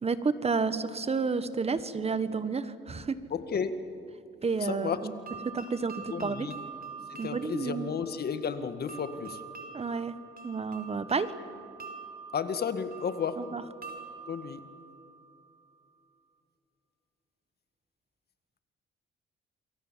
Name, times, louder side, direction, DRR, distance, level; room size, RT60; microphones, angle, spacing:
voice 1, 0.0-3.2 4.4-5.1 5.4-6.5 7.2-7.9 9.7-10.2 10.4-11.3 13.5-13.6, right 4 dB, 30° right, 13 dB, 1.5 m, -30 dB
voice 2, 3.3-4.0 4.6-5.1 6.1-6.6 7.1-9.4 12.3-13.6 14.3-14.6, left 6 dB, 55° left, 10 dB, 1.9 m, -33 dB
sound 1, 4.9-15.7, right 5 dB, 45° right, 4.7 m, -46 dB
28.5 x 23.5 x 7.6 m, 2.7 s
cardioid pair, 90°, 20 cm